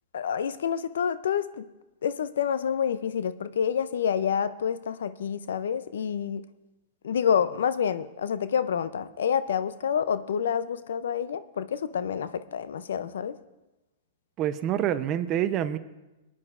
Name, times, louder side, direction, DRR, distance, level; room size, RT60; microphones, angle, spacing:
voice 1, 0.1-1.6 2.0-6.4 7.0-13.3, left 8 dB, 80° left, 14 dB, 0.5 m, -28 dB
voice 2, 14.4-15.8, right 10 dB, 35° right, 12 dB, 0.7 m, -26 dB
22.5 x 10.0 x 2.5 m, 1.0 s
hypercardioid pair, 125°, 0 cm